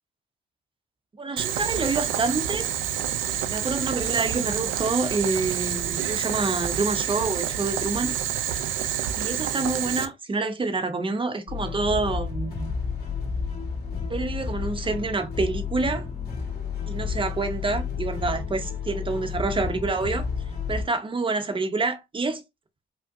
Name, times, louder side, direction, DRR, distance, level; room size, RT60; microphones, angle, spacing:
voice 1, 1.2-2.7 3.5-8.2 9.1-12.7 14.1-16.1 16.9-20.3 20.7-22.4, right 3 dB, 25° right, 0.8 m, -27 dB
Boiling, 1.4-10.1, right 10 dB, 85° right, 0.5 m, -28 dB
sound 1, 11.5-20.8, left 5 dB, 55° left, 2.2 m, -31 dB
5.1 x 2.2 x 2.5 m
cardioid pair, 90°, 20 cm